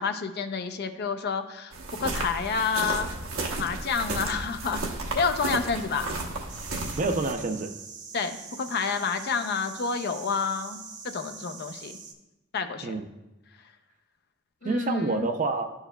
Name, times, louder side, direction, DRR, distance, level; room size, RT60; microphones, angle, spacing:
voice 1, 0.0-1.7 2.0-3.1 3.6-4.8 5.1-6.1 8.1-12.0 12.5-12.9 14.6-15.3, left 5 dB, 50° left, 8 dB, 0.5 m, -29 dB
sound 1, 1.7-7.3, right 2 dB, 90° right, 1.0 m, -33 dB
sound 2, 6.5-12.1, right 5 dB, 55° right, 0.9 m, -43 dB
voice 2, 7.0-7.7 12.8-13.1 14.6-15.7, right 3 dB, 40° right, 7 dB, 0.5 m, -28 dB
12.0 x 4.7 x 2.2 m, 0.98 s
head